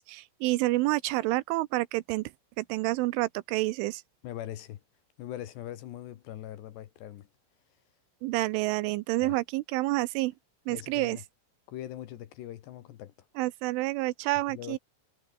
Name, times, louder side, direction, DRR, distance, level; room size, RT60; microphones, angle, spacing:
voice 1, 0.0-2.2 2.6-4.0 8.2-10.3 10.7-11.2 13.4-14.8, right 20 dB, 80° right, 3.0 m, -28 dB
voice 2, 4.2-4.8 5.2-7.3 9.2-9.4 10.7-11.2 11.7-13.1 14.5-14.8, left 12 dB, 70° left, 3.2 m, -41 dB
omnidirectional pair, 5.8 m